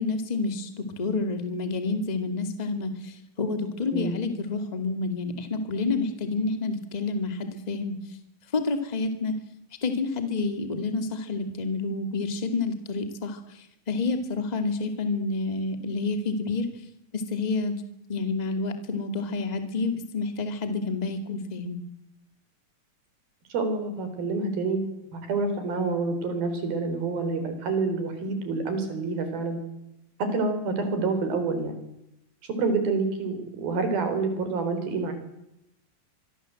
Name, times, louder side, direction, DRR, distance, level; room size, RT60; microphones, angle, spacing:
voice 1, 0.0-7.9 8.5-9.4 9.8-16.7 17.1-17.8 18.1-21.8, left 3 dB, 15° left, 7 dB, 1.8 m, -29 dB
voice 2, 23.5-24.8 25.1-29.6 30.2-31.8 32.4-35.1, right 3 dB, 85° right, 8 dB, 5.8 m, -28 dB
25.0 x 23.0 x 7.8 m, 0.84 s
omnidirectional pair, 4.1 m